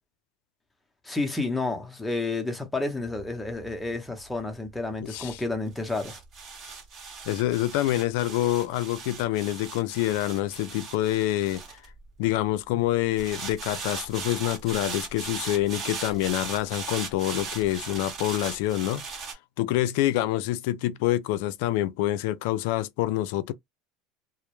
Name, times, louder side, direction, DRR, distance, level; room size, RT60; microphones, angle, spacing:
voice 1, 1.0-6.2, left 3 dB, 10° left, 0.7 m, -30 dB
sound 1, 3.0-12.5 13.2-19.3, right 5 dB, 40° right, 0.9 m, -38 dB
voice 2, 5.0-5.4 6.6-6.7 7.3-11.6 12.2-23.5, left 14 dB, 75° left, 0.3 m, -27 dB
2.0 x 2.0 x 3.0 m
supercardioid pair, 105°, 0 cm